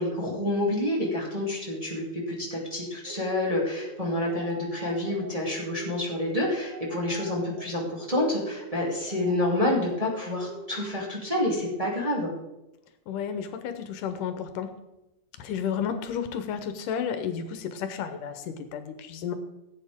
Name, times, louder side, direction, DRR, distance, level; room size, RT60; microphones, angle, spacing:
voice 1, 0.0-12.3, left 1 dB, 10° right, -5 dB, 2.3 m, -28 dB
sound 1, 3.0-10.9, right 4 dB, 60° right, 1.7 m, -44 dB
voice 2, 13.1-14.7 15.4-19.3, left 7 dB, 80° left, 9 dB, 2.5 m, -32 dB
16.5 x 8.8 x 3.6 m, 0.95 s
omnidirectional pair, 3.7 m